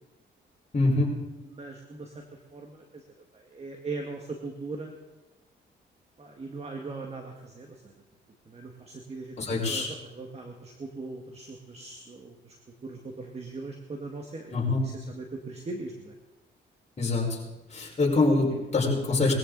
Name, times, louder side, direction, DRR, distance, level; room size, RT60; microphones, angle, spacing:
voice 1, 0.7-1.1 9.4-9.9 14.5-14.8 17.0-17.4 17.7-19.3, left 3 dB, 35° left, -2 dB, 5.0 m, -24 dB
voice 2, 1.5-2.2 2.5-3.0 3.3-4.9 6.2-7.9 8.5-9.8 10.1-12.6 12.8-14.5 14.8-16.1, right 3 dB, 30° right, 2 dB, 1.9 m, -40 dB
21.0 x 14.5 x 4.0 m, 1.1 s
cardioid pair, 90°, 20 cm